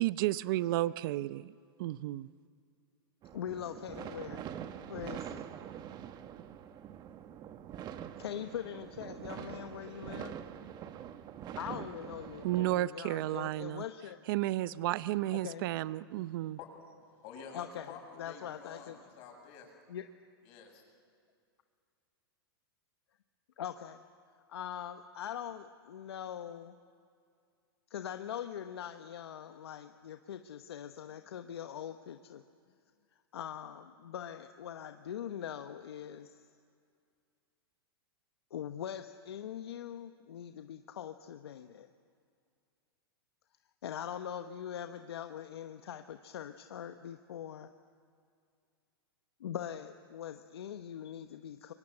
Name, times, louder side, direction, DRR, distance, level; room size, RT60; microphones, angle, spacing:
voice 1, 0.0-1.5 1.8-2.3 12.4-13.8 14.3-16.6, right 16 dB, 55° right, 16 dB, 0.7 m, -32 dB
sound 1, 3.2-12.8, right 9 dB, 30° right, 1.4 m, -45 dB
voice 2, 3.3-4.4 4.9-5.4 8.2-10.3 11.5-14.2 15.3-15.7 17.5-19.0 19.9-20.0 23.6-24.0 24.5-26.8 27.9-32.4 33.3-36.4 38.5-41.9 43.8-47.7 49.4-51.7, left 9 dB, 80° left, 7 dB, 1.1 m, -42 dB
voice 3, 16.3-16.7 17.2-18.0 18.2-19.7 20.4-20.8, left 6 dB, 45° left, 2 dB, 7.8 m, -49 dB
29.5 x 24.5 x 7.9 m, 2.3 s
hypercardioid pair, 120°, 13 cm